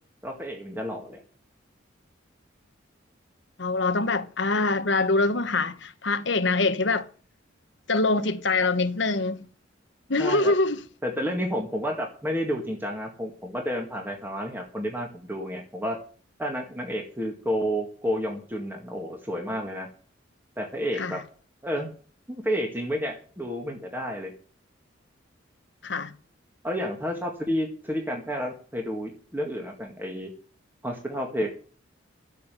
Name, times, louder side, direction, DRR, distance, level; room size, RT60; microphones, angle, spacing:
voice 1, 0.2-1.2 10.2-10.5 11.0-16.0 16.4-19.9 20.6-21.2 21.6-21.9 22.3-24.3 26.6-30.3 30.8-31.5, equal, 10° right, 1.9 m, -30 dB
voice 2, 3.6-7.1 7.9-9.4 10.1-10.8 21.0-21.2 25.8-26.1, left 3 dB, 60° left, 1.2 m, -24 dB
12.5 x 8.4 x 6.9 m
head